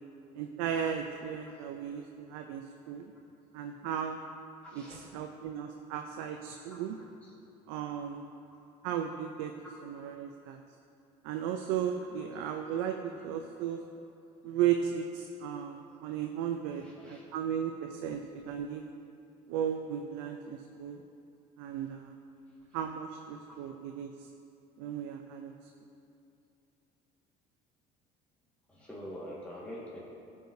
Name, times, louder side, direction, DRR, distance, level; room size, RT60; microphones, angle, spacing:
voice 1, 0.3-3.0 3.5-4.2 4.7-7.0 7.7-8.2 8.8-9.5 9.8-10.6 11.2-13.0 13.2-13.8 14.4-18.8 19.5-21.0 21.6-22.1 22.7-24.3 24.8-25.5, right 9 dB, 85° right, 4 dB, 0.5 m, -35 dB
voice 2, 4.6-5.3 6.7-7.3 8.5-8.6 9.6-9.8 12.0-12.3 13.1-13.6 16.7-17.2 23.5-23.6 28.7-30.0, equal, 5° left, -7 dB, 1.6 m, -47 dB
14.0 x 4.8 x 2.7 m, 2.6 s
supercardioid pair, 85°, 18 cm